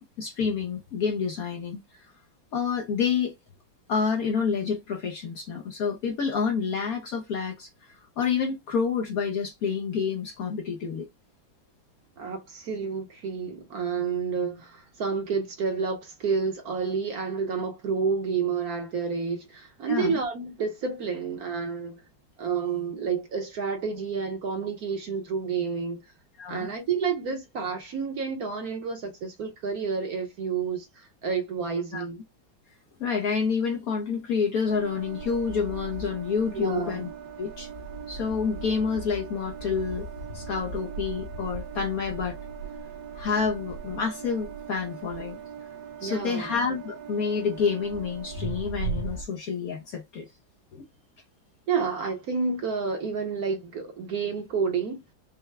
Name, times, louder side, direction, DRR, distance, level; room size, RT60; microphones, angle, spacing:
voice 1, 0.0-1.8 2.5-3.3 3.9-11.1 19.9-20.2 26.4-26.7 31.9-32.0 33.0-37.1 37.4-37.7 38.1-40.1 40.3-42.4 43.1-45.4 46.0-50.3 50.7-50.8, left 6 dB, 65° left, 0.9 m, -28 dB
voice 2, 12.2-22.0 22.4-26.0 26.5-32.2 36.5-37.1 46.0-46.5 51.7-55.0, right 5 dB, 55° right, 1.2 m, -30 dB
sound 1, 34.6-49.2, right 4 dB, 80° right, 1.9 m, -38 dB
5.6 x 2.1 x 3.3 m
omnidirectional pair, 2.1 m